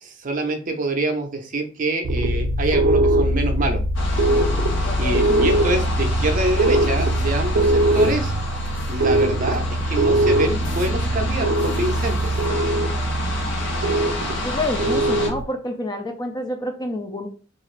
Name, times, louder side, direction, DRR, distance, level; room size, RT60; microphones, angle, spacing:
voice 1, 0.0-3.8 5.0-8.3 8.9-12.4, right 2 dB, 40° right, 5 dB, 0.5 m, -25 dB
sound 1, 2.0-15.4, right 1 dB, 90° right, 0.5 m, -21 dB
sound 2, 3.9-15.3, left 1 dB, 65° left, 0.9 m, -30 dB
voice 2, 4.8-5.5 14.3-17.3, left 1 dB, 20° left, 4 dB, 0.3 m, -28 dB
2.4 x 2.4 x 3.1 m, 0.38 s
head